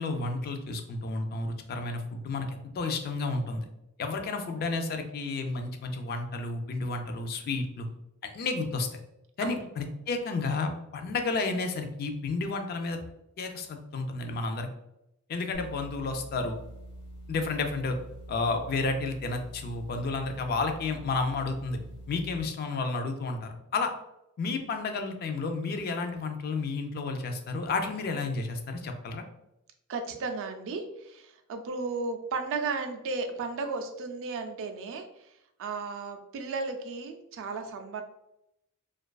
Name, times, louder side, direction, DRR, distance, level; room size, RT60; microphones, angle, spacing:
voice 1, 0.0-3.6 4.0-7.9 8.2-8.9 9.4-13.0 13.4-14.7 15.3-16.6 17.3-18.0 18.3-21.8 22.1-23.9 24.4-29.2, left 3 dB, 45° left, 6 dB, 0.3 m, -31 dB
sound 1, 15.5-22.4, right 1 dB, 85° left, 0.6 m, -45 dB
voice 2, 29.9-35.3 35.6-38.0, right 4 dB, 60° right, 6 dB, 0.3 m, -34 dB
2.5 x 2.3 x 2.2 m, 0.84 s
head